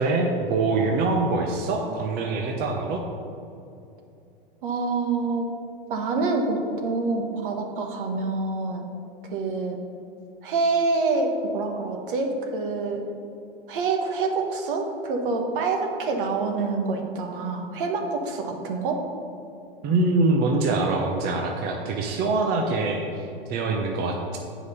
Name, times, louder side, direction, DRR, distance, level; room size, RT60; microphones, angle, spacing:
voice 1, 0.0-3.0 19.8-24.4, right 3 dB, 35° right, 1 dB, 0.8 m, -24 dB
voice 2, 4.6-5.5 5.9-8.9 9.2-9.8 10.4-13.0 13.7-19.0, right 3 dB, 60° right, 3 dB, 1.3 m, -26 dB
8.1 x 5.0 x 5.5 m, 2.6 s
hypercardioid pair, 115°, 29 cm